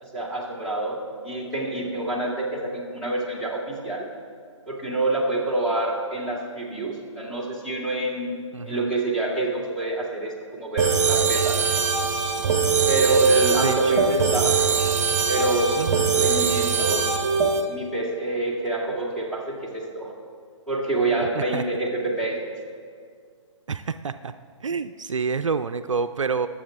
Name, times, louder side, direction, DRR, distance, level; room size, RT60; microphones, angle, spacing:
voice 1, 0.0-4.1 4.7-8.4 8.7-11.6 12.9-14.7 15.3-15.9 16.1-17.1 17.7-20.1 20.7-22.5, right 2 dB, 5° left, -5 dB, 1.9 m, -26 dB
voice 2, 8.5-8.9 13.6-14.5 15.8-16.1 21.4-21.6 23.7-24.3 24.6-26.5, right 5 dB, 75° right, 11 dB, 0.5 m, -28 dB
sound 1, 10.8-17.6, right 6 dB, 30° right, 1.2 m, -22 dB
21.5 x 7.5 x 3.6 m, 2.1 s
figure-of-eight pair, 135°, 16 cm